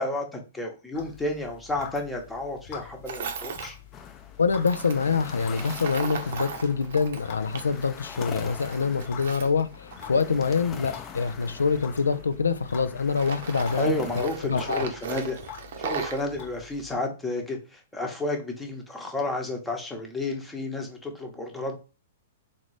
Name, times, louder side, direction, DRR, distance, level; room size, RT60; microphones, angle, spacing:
voice 1, 0.0-3.8 13.8-15.4 15.8-21.8, left 2 dB, 10° left, 0.9 m, -31 dB
sound 1, 0.9-17.0, left 9 dB, 45° left, 0.9 m, -46 dB
Tools, 3.1-3.7 4.6-7.9 8.2-10.4 11.1-12.7 13.1-16.2, right 6 dB, 60° right, 0.7 m, -37 dB
sound 2, 3.9-14.2, left 7 dB, 25° left, 0.6 m, -43 dB
voice 2, 4.4-14.9, left 5 dB, 85° left, 0.4 m, -25 dB
3.8 x 2.6 x 3.2 m
hypercardioid pair, 115°, 0 cm